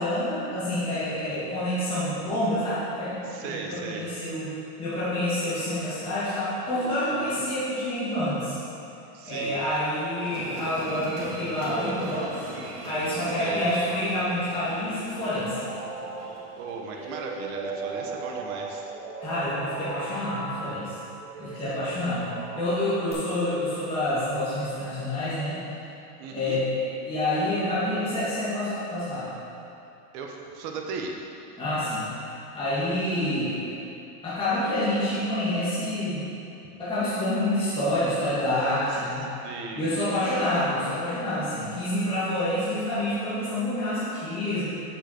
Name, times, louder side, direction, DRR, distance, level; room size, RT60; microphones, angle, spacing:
voice 1, 0.0-4.5 4.8-8.6 9.3-12.4 12.8-15.6 19.2-20.9 21.4-22.3 22.5-25.6 26.3-29.3 31.6-32.1 32.5-33.8 34.2-36.3 36.8-39.5 39.7-44.6, left 1 dB, 10° left, -12 dB, 1.8 m, -28 dB
voice 2, 3.2-4.1 7.1-7.4 9.1-9.6 13.3-13.7 16.6-18.9 21.8-22.0 26.2-26.6 30.1-31.2 39.4-39.9 40.1-40.3, right 4 dB, 35° right, 1 dB, 1.0 m, -37 dB
sound 1, 10.2-17.5 17.8-17.9, right 2 dB, 75° right, 1.9 m, -40 dB
sound 2, 14.6-23.1, right 3 dB, 15° right, 2.0 m, -37 dB
7.5 x 7.0 x 4.5 m, 2.7 s
supercardioid pair, 150°, 46 cm